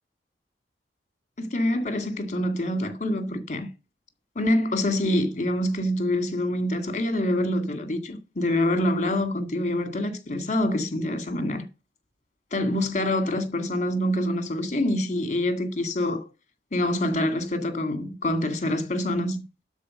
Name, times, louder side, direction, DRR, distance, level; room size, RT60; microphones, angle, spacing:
voice 1, 1.4-3.7 4.4-11.6 12.5-16.3 16.7-19.4, left 1 dB, 45° left, 2.1 m, -26 dB
12.0 x 4.5 x 6.4 m
head